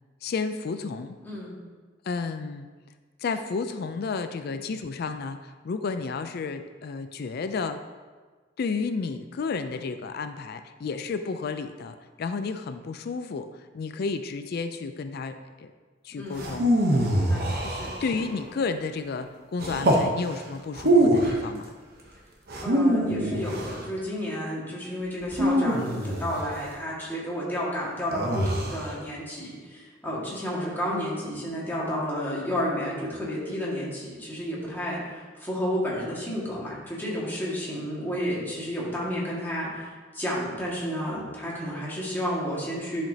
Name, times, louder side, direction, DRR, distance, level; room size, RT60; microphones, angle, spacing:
voice 1, 0.2-1.2 2.0-2.7 3.2-7.8 8.6-13.5 13.7-15.7 16.0-16.7 17.6-17.7 18.0-21.7, left 4 dB, 55° left, 9 dB, 0.4 m, -32 dB
voice 2, 1.2-1.6 16.2-16.5 17.1-18.2 22.6-43.0, equal, 10° left, -6 dB, 1.8 m, -31 dB
sound 1, 16.4-18.4 19.6-20.1 20.7-21.4 22.5-23.8 25.3-26.5 28.1-28.9, right 1 dB, 55° right, 0.9 m, -24 dB
10.5 x 5.1 x 2.8 m, 1.4 s
head